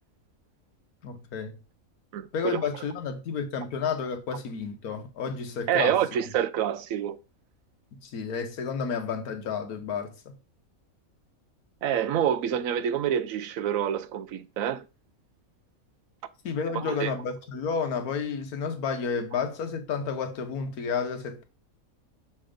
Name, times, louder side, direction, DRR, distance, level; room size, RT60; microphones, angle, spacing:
voice 1, 1.0-1.6 2.3-6.0 7.9-10.4 16.4-21.4, left 6 dB, 90° left, 1.5 m, -31 dB
voice 2, 2.1-2.6 5.7-7.2 11.8-14.9 16.7-17.1, right 9 dB, 75° right, 1.0 m, -27 dB
7.0 x 3.2 x 5.0 m
omnidirectional pair, 1.5 m